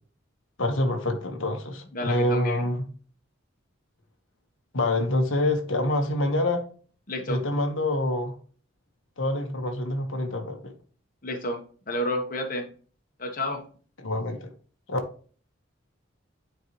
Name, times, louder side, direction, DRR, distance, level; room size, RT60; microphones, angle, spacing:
voice 1, 0.6-2.8 4.7-6.6 7.3-8.4 9.2-10.7 14.0-14.5 14.9-15.0, left 1 dB, 85° left, 4 dB, 1.4 m, -26 dB
voice 2, 1.9-2.7 7.1-7.4 11.2-11.6 11.9-12.7 13.2-13.7, left 1 dB, 45° left, 3 dB, 1.3 m, -30 dB
9.3 x 4.6 x 3.1 m, 0.41 s
head